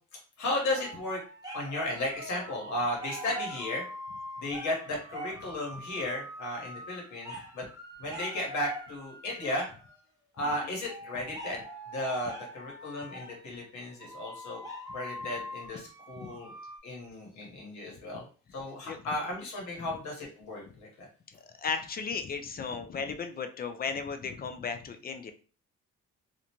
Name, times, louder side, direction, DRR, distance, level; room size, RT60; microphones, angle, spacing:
voice 1, 0.4-1.2 1.5-3.8 4.4-7.6 8.0-9.7 10.4-11.6 11.9-14.6 14.9-16.5 16.8-18.2 18.5-20.9, left 1 dB, 70° left, -1 dB, 1.3 m, -34 dB
sound 1, 0.7-10.0 10.9-16.8, equal, 10° right, 0.8 m, -43 dB
voice 2, 10.4-10.7 16.2-16.3 18.9-19.0 21.3-25.3, left 5 dB, 30° left, 7 dB, 0.4 m, -36 dB
2.6 x 2.1 x 2.8 m, 0.39 s
cardioid pair, 90°, 30 cm